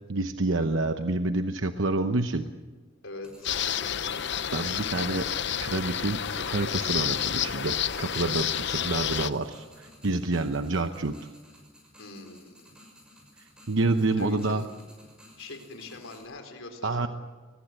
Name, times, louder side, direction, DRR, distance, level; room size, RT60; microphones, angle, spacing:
voice 1, 0.1-2.5 4.5-5.3 5.6-11.2 13.7-14.6 16.8-17.1, right 2 dB, 70° right, 8 dB, 0.9 m, -28 dB
voice 2, 3.0-4.1 12.0-12.7 14.1-14.7 15.4-17.1, left 2 dB, 80° left, 5 dB, 4.1 m, -43 dB
sound 1, 3.2-16.2, left 1 dB, 5° right, 6.2 m, -55 dB
sound 2, 3.4-9.3, left 9 dB, 60° left, 0.7 m, -30 dB
23.5 x 20.0 x 7.8 m, 1.4 s
head